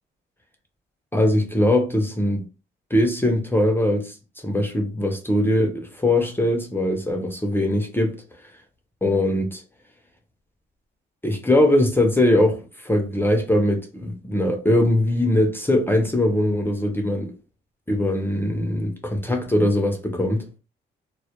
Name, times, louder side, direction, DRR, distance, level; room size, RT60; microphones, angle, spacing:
voice 1, 1.1-2.4 2.9-4.1 4.4-8.2 9.0-9.6 11.2-17.3 17.9-20.5, left 1 dB, 10° left, 0.4 m, -21 dB
2.1 x 2.1 x 2.8 m
cardioid pair, 90°, 20 cm